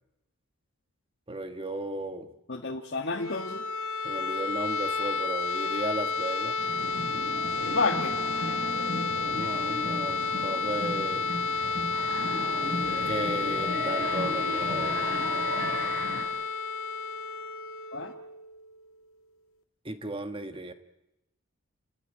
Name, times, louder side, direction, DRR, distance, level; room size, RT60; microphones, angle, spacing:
voice 1, 1.3-2.3 4.0-6.6 9.2-11.3 13.0-15.1 19.8-20.7, right 2 dB, 25° right, 8 dB, 1.6 m, -35 dB
voice 2, 2.5-3.7 7.7-8.1 17.9-18.1, left 3 dB, 50° left, 3 dB, 1.6 m, -30 dB
sound 1, 3.1-18.9, left 4 dB, 75° left, 1.9 m, -31 dB
sound 2, 6.6-16.2, right 1 dB, 50° right, 4.9 m, -36 dB
29.5 x 14.5 x 10.0 m, 0.91 s
head